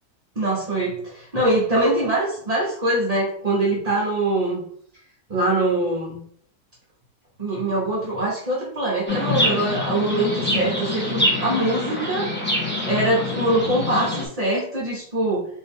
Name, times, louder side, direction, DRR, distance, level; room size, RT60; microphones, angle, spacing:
voice 1, 0.4-4.6 5.3-6.2 7.4-12.3 12.9-15.5, right 1 dB, 35° right, -5 dB, 0.7 m, -23 dB
Chirp tweet, 9.1-14.2, left 1 dB, 10° left, 0.9 m, -25 dB
4.2 x 2.7 x 3.6 m, 0.62 s
omnidirectional pair, 1.8 m